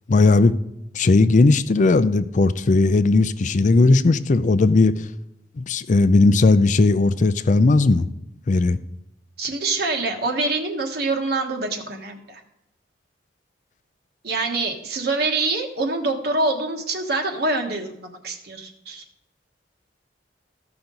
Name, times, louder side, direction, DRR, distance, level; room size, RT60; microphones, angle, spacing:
voice 1, 0.1-0.5 0.9-5.1 5.6-8.1 8.5-8.8, left 3 dB, 45° left, 0.4 m, -17 dB
voice 2, 9.4-12.4 14.2-19.0, right 3 dB, 60° right, 1.3 m, -25 dB
14.5 x 5.9 x 3.9 m
head